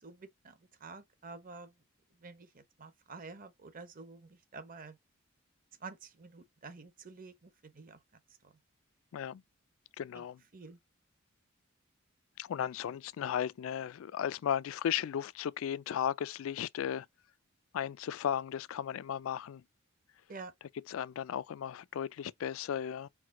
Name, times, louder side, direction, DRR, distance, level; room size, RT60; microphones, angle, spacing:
voice 1, 0.0-1.7 2.2-5.0 5.8-8.0 10.1-10.2 10.5-10.8 20.3-20.5, right 4 dB, 40° right, 0.8 m, -49 dB
voice 2, 10.0-10.4 12.4-17.1 17.7-19.6 20.9-23.1, left 9 dB, 75° left, 0.3 m, -35 dB
4.7 x 2.2 x 3.6 m
head